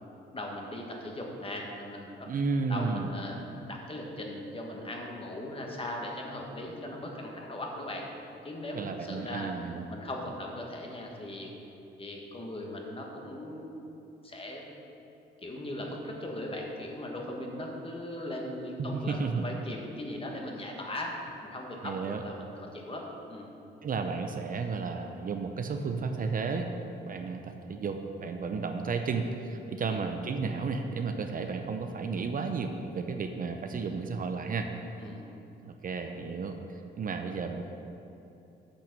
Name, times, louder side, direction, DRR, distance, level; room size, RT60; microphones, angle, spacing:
voice 1, 0.3-2.3 2.7-3.4 3.7-8.1 8.4-9.5 9.9-11.5 12.0-14.8 15.4-23.0 23.3-23.5 29.8-30.0 35.0-35.2, left 1 dB, 25° left, 0 dB, 1.6 m, -39 dB
voice 2, 2.3-3.1 8.7-9.8 18.9-19.5 21.8-22.2 23.8-26.7 27.1-34.7 35.6-37.6, right 4 dB, 45° right, 5 dB, 0.6 m, -33 dB
8.5 x 6.1 x 6.1 m, 3.0 s
cardioid pair, 90°, 20 cm